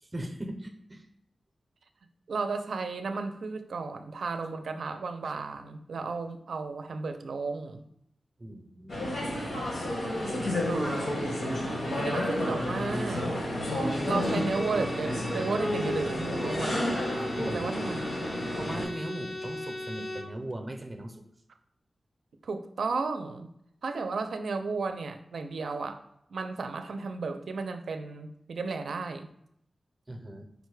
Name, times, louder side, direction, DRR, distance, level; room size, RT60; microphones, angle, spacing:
voice 1, 0.0-1.1 8.4-9.1 17.4-17.7 18.6-21.2 30.1-30.5, right 1 dB, 20° right, 6 dB, 0.6 m, -39 dB
voice 2, 2.3-7.8 10.6-11.1 11.9-13.3 14.1-17.0 17.5-18.3 22.4-23.5 23.8-26.0 26.3-29.3, right 4 dB, 85° right, 7 dB, 0.4 m, -34 dB
sound 1, 8.9-18.9, left 1 dB, 85° left, 1.3 m, -30 dB
Bowed string instrument, 13.7-20.4, left 1 dB, 25° left, 0.5 m, -40 dB
5.0 x 2.2 x 4.7 m, 0.73 s
wide cardioid pair, 145°, 0 cm